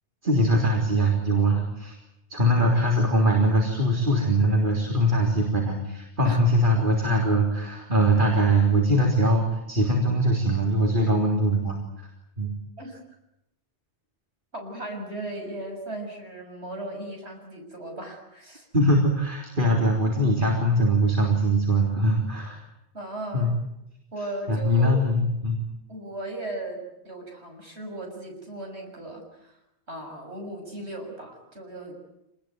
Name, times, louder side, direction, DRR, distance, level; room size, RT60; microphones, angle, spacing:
voice 1, 0.2-2.0 2.3-11.8 12.4-12.5 18.7-22.6 23.3-23.5 24.2-25.6, right 1 dB, 50° right, 0 dB, 3.9 m, -22 dB
voice 2, 14.5-18.7 22.9-23.5 24.1-25.0 25.9-29.6 29.9-31.9, right 1 dB, 80° right, 2 dB, 7.0 m, -37 dB
27.0 x 20.5 x 9.4 m, 0.85 s
omnidirectional pair, 1.1 m